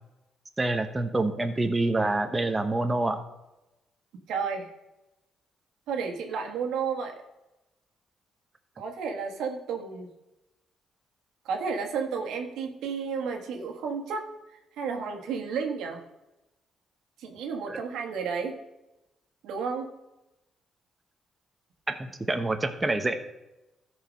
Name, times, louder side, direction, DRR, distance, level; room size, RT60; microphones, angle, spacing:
voice 1, 0.6-3.2 17.7-17.8 21.9-23.1, right 2 dB, 20° right, 7 dB, 0.9 m, -27 dB
voice 2, 4.3-4.7 5.9-7.2 8.8-10.1 11.4-14.3 14.8-16.0 17.2-18.6 19.4-19.9, right 5 dB, 85° right, 3 dB, 1.5 m, -32 dB
13.5 x 4.9 x 5.2 m, 0.96 s
cardioid pair, 90°, 0 cm